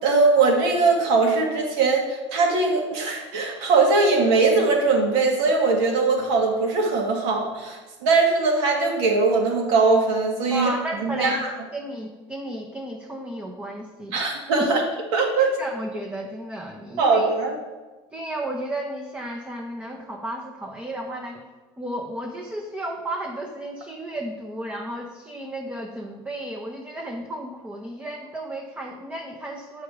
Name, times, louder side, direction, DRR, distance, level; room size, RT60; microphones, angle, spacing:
voice 1, 0.0-10.7 11.0-11.5 14.1-14.8 15.1-15.5 17.0-17.6, right 3 dB, 75° right, 1 dB, 1.9 m, -21 dB
voice 2, 10.5-11.4 11.7-14.2 14.6-14.8 15.6-17.3 18.1-21.4 21.8-29.8, right 1 dB, 10° right, 0 dB, 0.8 m, -33 dB
8.0 x 4.9 x 4.8 m, 1.2 s
supercardioid pair, 120°, 14 cm